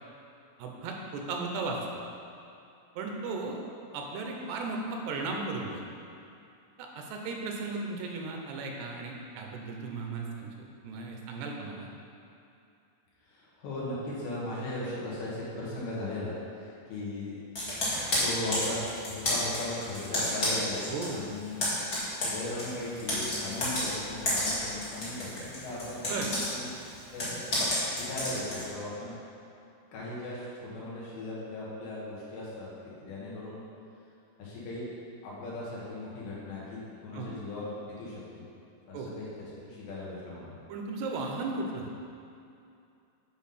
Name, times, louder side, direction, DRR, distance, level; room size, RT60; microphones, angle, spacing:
voice 1, 0.6-1.8 3.0-3.6 3.9-5.8 6.8-10.5 10.8-11.9 20.9-21.2 26.1-26.3 37.1-37.4 38.9-39.1 40.7-41.9, right 3 dB, 80° right, 1 dB, 2.8 m, -35 dB
voice 2, 13.3-17.4 18.2-21.7 22.2-26.2 26.5-26.7 27.1-27.4 27.9-29.2 29.9-32.7 33.0-33.6 34.4-34.9 35.2-38.5 38.9-39.3 39.6-40.5, left 2 dB, 90° left, -7 dB, 4.0 m, -38 dB
Computer keyboard, 17.5-21.1 21.4-28.7, left 1 dB, 65° left, 0.9 m, -31 dB
9.5 x 3.9 x 5.7 m, 2.6 s
omnidirectional pair, 4.8 m